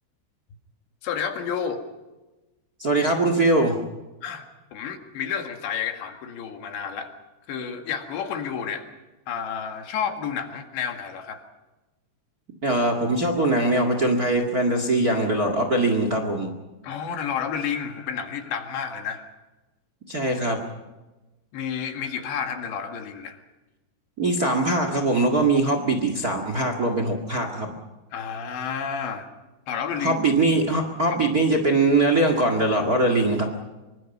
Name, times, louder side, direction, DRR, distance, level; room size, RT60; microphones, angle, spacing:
voice 1, 1.0-1.8 4.2-4.4 4.7-7.1 7.5-8.9 9.3-11.4 16.8-19.3 21.5-23.4 28.1-29.3 29.7-30.2, left 7 dB, 80° left, 5 dB, 4.2 m, -30 dB
voice 2, 2.8-3.7 12.6-16.5 20.1-20.6 24.2-27.7 30.0-33.4, right 2 dB, 45° right, 6 dB, 1.2 m, -22 dB
25.0 x 23.5 x 5.5 m, 1.1 s
omnidirectional pair, 5.1 m